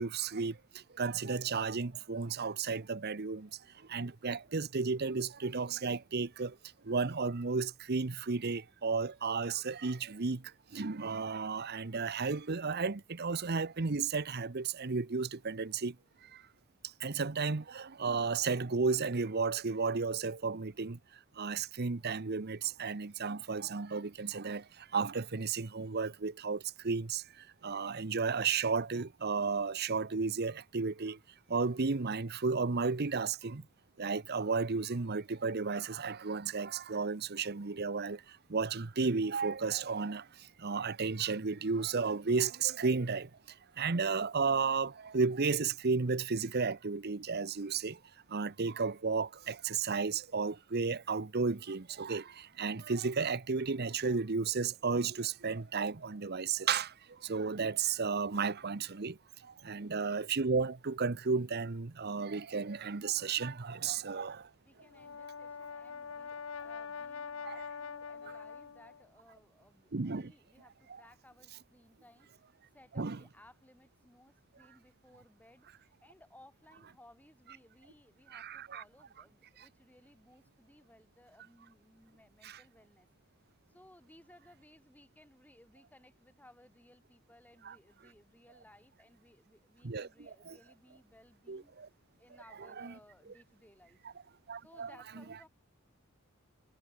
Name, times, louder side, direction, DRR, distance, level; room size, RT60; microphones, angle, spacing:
voice 1, 0.0-3.5 3.9-6.6 6.8-16.0 16.3-16.4 17.0-21.0 21.4-31.2 31.5-33.6 34.0-43.3 43.8-48.0 48.3-64.4 67.5-67.6 69.9-70.3 70.9-71.0 73.0-73.2 78.3-78.8 79.6-79.7 82.4-82.6 87.6-87.8 89.8-90.6 91.5-91.9 92.8-92.9 94.5-94.9, right 4 dB, 50° right, 0.9 m, -33 dB
voice 2, 63.9-72.4 72.7-83.1 83.3-83.4 83.7-94.0 94.6-95.5, left 1 dB, 10° left, 6.4 m, -62 dB
Brass instrument, 64.8-69.0, left 5 dB, 75° left, 0.8 m, -44 dB
head